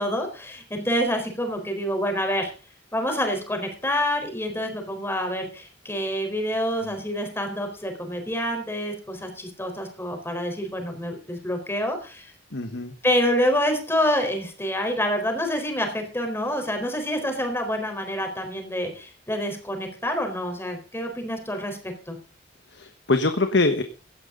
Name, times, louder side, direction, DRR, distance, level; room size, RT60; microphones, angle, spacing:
voice 1, 0.0-2.5 2.9-12.3 13.0-22.2, equal, 15° left, 4 dB, 4.3 m, -27 dB
voice 2, 12.5-12.9 22.7-23.8, left 2 dB, 70° left, 7 dB, 1.3 m, -24 dB
17.0 x 12.0 x 3.9 m, 0.37 s
head